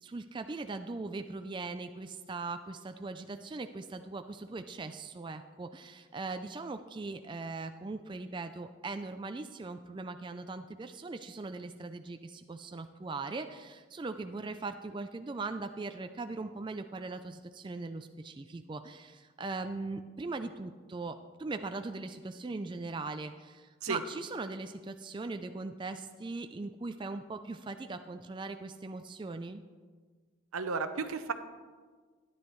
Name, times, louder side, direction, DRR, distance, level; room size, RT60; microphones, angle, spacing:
voice 1, 0.0-29.6, right 3 dB, 20° right, 8 dB, 0.3 m, -40 dB
voice 2, 30.5-31.3, right 4 dB, 90° right, 9 dB, 0.7 m, -33 dB
13.0 x 10.5 x 3.1 m, 1.5 s
head